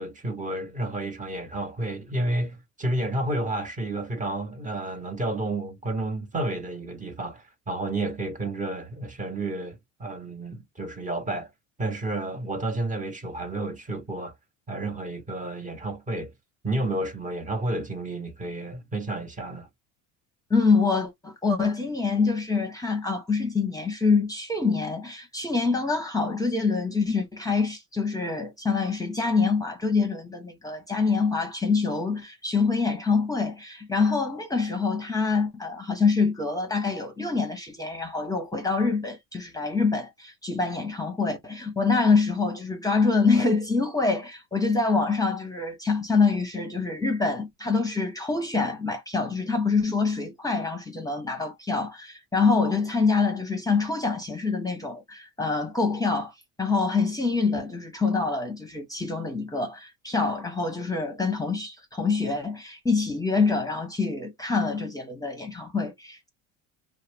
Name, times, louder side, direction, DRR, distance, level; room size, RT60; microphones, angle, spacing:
voice 1, 0.0-11.5 11.8-14.3 14.7-16.3 16.6-19.7, right 2 dB, 20° right, 0.9 m, -31 dB
voice 2, 20.5-66.3, left 4 dB, 10° left, 0.8 m, -25 dB
2.4 x 2.1 x 3.3 m
hypercardioid pair, 80°, 38 cm